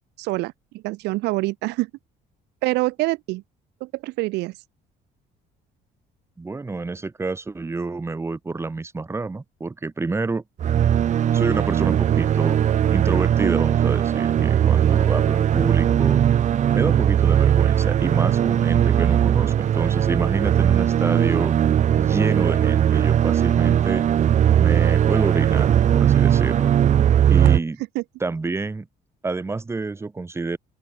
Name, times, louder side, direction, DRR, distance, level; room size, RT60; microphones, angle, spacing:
voice 1, 0.2-0.5 0.8-1.9 2.6-3.4 3.8-4.5 28.0-28.1, right 20 dB, 85° right, 0.6 m, -25 dB
voice 2, 6.4-10.4 11.3-12.6 12.9-16.2 16.7-21.6 22.0-24.1 24.6-26.7 27.3-27.8 28.2-28.9 29.2-30.6, right 3 dB, 15° right, 1.0 m, -28 dB
sound 1, 10.6-27.6, right 10 dB, 45° right, 0.8 m, -19 dB
open air
cardioid pair, 110°, 17 cm